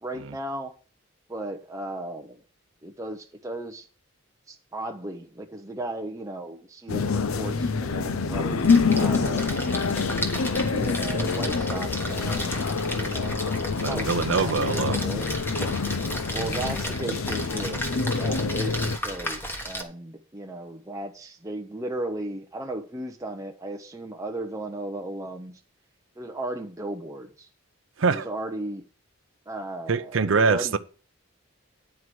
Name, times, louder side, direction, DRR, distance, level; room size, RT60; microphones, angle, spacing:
voice 1, 0.0-0.7 1.3-2.4 2.8-3.9 4.5-9.9 10.5-13.3 13.9-15.2 16.3-25.6 26.2-27.5 28.1-28.8 29.5-30.8, right 1 dB, 15° right, 0.7 m, -36 dB
sound 1, 6.9-19.0, left 4 dB, 80° left, 0.6 m, -26 dB
Splash splatter, 8.5-19.8, equal, 10° left, 1.2 m, -34 dB
voice 2, 13.8-15.1 28.0-28.3 29.9-30.8, right 4 dB, 65° right, 0.5 m, -24 dB
9.8 x 4.7 x 7.7 m
head